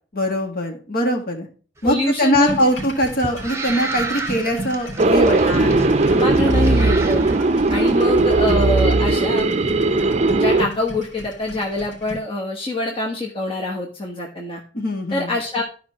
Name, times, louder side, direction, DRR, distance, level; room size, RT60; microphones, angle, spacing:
voice 1, 0.1-1.5 1.8-5.8 14.7-15.4, equal, 55° left, 2 dB, 2.0 m, -22 dB
voice 2, 1.8-2.7 5.4-7.2 7.7-9.5 10.4-14.6 15.1-15.6, left 2 dB, 30° left, -1 dB, 1.3 m, -25 dB
sound 1, 1.8-8.1, right 3 dB, 15° right, 0.9 m, -32 dB
sound 2, 2.5-12.2, equal, 75° left, 3.5 m, -35 dB
sound 3, 5.0-10.7, right 2 dB, 35° right, 0.6 m, -17 dB
14.0 x 5.2 x 2.9 m, 0.38 s
head